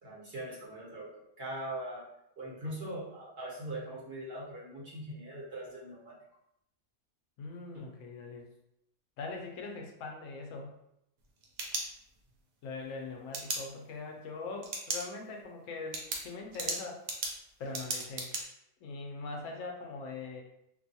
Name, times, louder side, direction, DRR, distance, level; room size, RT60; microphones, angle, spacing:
voice 1, 0.0-2.0 2.4-6.2, right 1 dB, 55° right, -6 dB, 1.1 m, -41 dB
voice 2, 7.4-8.5 9.2-10.8 12.6-17.0 17.6-18.3 18.8-20.4, left 3 dB, 90° left, 2 dB, 1.0 m, -41 dB
sound 1, 11.2-12.4 13.3-13.6 14.6-15.0 15.4-15.5 15.9-18.4, right 3 dB, 90° right, 1.0 m, -36 dB
2.6 x 2.2 x 2.6 m, 0.79 s
omnidirectional pair, 1.3 m